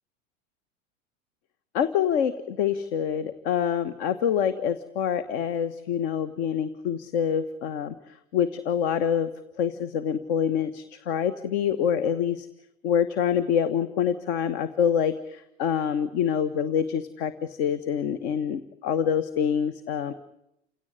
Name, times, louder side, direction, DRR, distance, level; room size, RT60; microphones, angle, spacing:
voice 1, 1.7-7.9 8.3-9.3 9.6-12.5 12.8-20.1, left 8 dB, 55° left, 12 dB, 1.5 m, -26 dB
30.0 x 17.5 x 9.7 m, 0.84 s
figure-of-eight pair, 85°, 40 cm